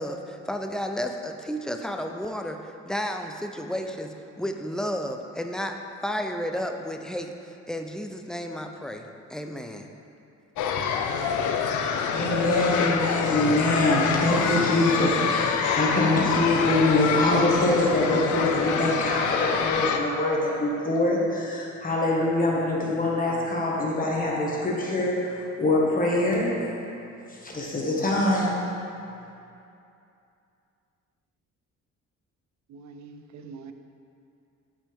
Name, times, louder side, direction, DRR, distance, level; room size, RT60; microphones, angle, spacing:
voice 1, 0.0-9.9, equal, ahead, 4 dB, 0.5 m, -32 dB
sound 1, 10.6-20.0, left 6 dB, 80° left, 0.6 m, -26 dB
voice 2, 12.1-26.7 27.4-28.6, left 1 dB, 30° left, -4 dB, 1.7 m, -24 dB
voice 3, 32.7-33.7, right 4 dB, 65° right, 7 dB, 0.6 m, -44 dB
8.2 x 6.0 x 3.5 m, 2.7 s
cardioid pair, 90°, 30 cm